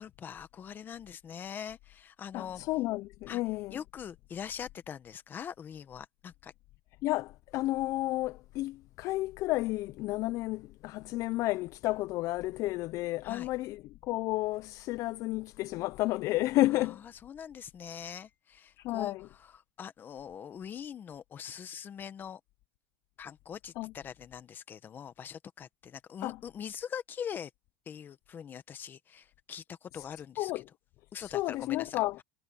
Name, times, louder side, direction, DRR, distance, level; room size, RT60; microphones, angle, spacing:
voice 1, 0.0-2.6 3.3-3.4 3.7-6.5 13.2-13.5 16.8-22.4 23.2-27.5 27.9-30.5 31.1-32.2, left 8 dB, 25° left, 1.4 m, -43 dB
voice 2, 2.3-3.8 7.0-17.0 18.8-19.3 23.8-23.9 26.2-26.4 29.9-30.1 30.4-30.6 31.2-32.2, left 18 dB, 45° left, 0.4 m, -32 dB
supercardioid pair, 140°, 8 cm